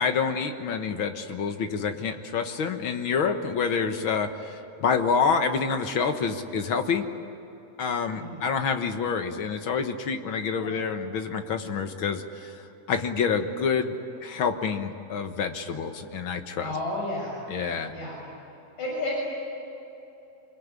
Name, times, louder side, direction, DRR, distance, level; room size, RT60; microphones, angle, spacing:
voice 1, 0.0-7.0 7.8-12.5 12.9-13.9 14.2-16.7 17.5-17.9, left 5 dB, 55° left, 6 dB, 1.6 m, -27 dB
voice 2, 8.1-8.5 10.6-10.9 16.6-17.3 17.9-18.2 18.8-19.2, left 2 dB, 80° left, -4 dB, 8.4 m, -32 dB
25.5 x 23.0 x 9.8 m, 3.0 s
omnidirectional pair, 3.7 m